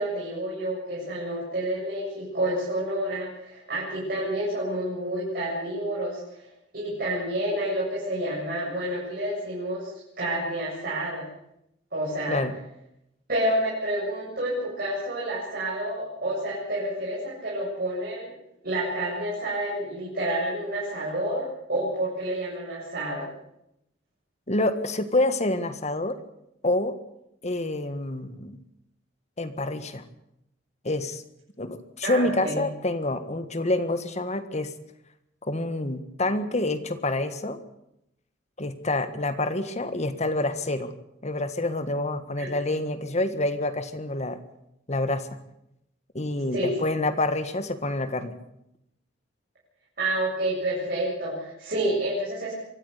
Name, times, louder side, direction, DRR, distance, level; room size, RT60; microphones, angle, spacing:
voice 1, 0.0-6.4 6.7-11.2 11.9-12.4 13.3-18.3 18.6-23.3 32.0-32.6 42.4-42.5 46.5-46.9 50.0-52.5, right 1 dB, 55° right, -7 dB, 7.8 m, -29 dB
voice 2, 24.5-26.1 26.6-27.0 27.4-28.6 29.4-30.0 30.8-31.2 31.6-34.7 35.4-37.6 38.6-40.9 41.2-44.4 44.9-45.3 46.1-48.3, left 2 dB, 35° left, 10 dB, 1.7 m, -27 dB
24.0 x 14.0 x 8.3 m, 0.81 s
head